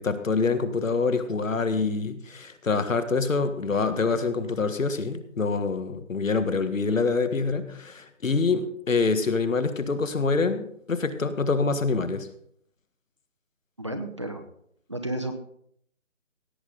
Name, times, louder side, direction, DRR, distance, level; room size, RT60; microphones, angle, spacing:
voice 1, 0.0-12.3, left 4 dB, 80° left, 11 dB, 1.6 m, -26 dB
voice 2, 13.8-14.4 14.9-15.3, right 1 dB, 25° right, 6 dB, 0.7 m, -32 dB
16.5 x 8.4 x 3.9 m, 0.67 s
figure-of-eight pair, 165°, 39 cm